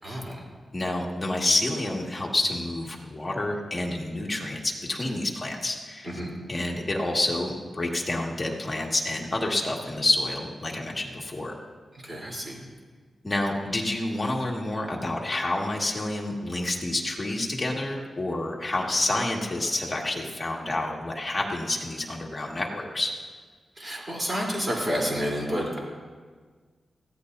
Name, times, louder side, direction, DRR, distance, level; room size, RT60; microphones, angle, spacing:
voice 1, 0.0-0.4 6.0-6.3 12.0-12.6 23.8-25.8, equal, 30° right, -3 dB, 3.6 m, -30 dB
voice 2, 0.7-6.1 6.5-11.5 13.2-23.1, left 2 dB, 25° left, -2 dB, 2.0 m, -28 dB
20.5 x 15.5 x 2.7 m, 1.5 s
wide cardioid pair, 115°, 0 cm